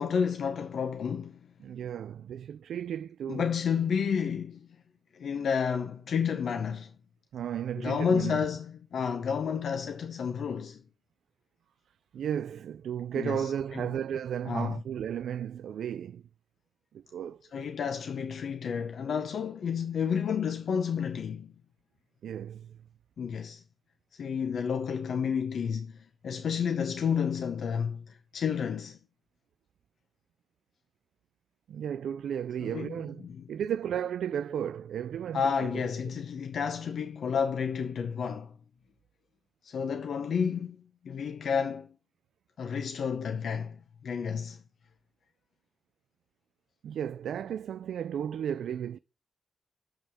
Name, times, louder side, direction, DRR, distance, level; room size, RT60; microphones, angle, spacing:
voice 1, 0.0-1.4 3.3-4.7 5.1-6.9 7.8-10.8 13.1-13.9 14.5-14.8 17.5-21.5 23.2-23.6 24.1-29.0 32.6-33.0 33.2-33.5 35.3-38.5 39.6-41.9 42.6-43.8 44.0-44.6, left 6 dB, 60° left, 0.8 m, -31 dB
voice 2, 1.6-3.5 7.3-8.4 12.1-16.2 16.9-17.4 22.2-22.8 31.7-35.8 46.8-49.0, right 9 dB, 85° right, 0.3 m, -34 dB
7.3 x 5.5 x 4.8 m
wide cardioid pair, 160°, 0 cm